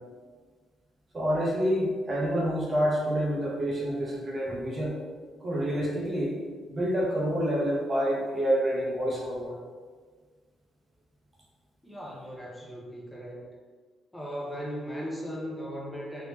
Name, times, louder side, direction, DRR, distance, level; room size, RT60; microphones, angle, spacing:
voice 1, 1.1-5.0 5.4-6.3 6.7-9.5, equal, 35° right, -3 dB, 0.9 m, -28 dB
voice 2, 11.8-13.5 14.1-16.3, equal, 10° left, -4 dB, 0.8 m, -37 dB
3.5 x 2.8 x 3.0 m, 1.5 s
cardioid pair, 90°, 0 cm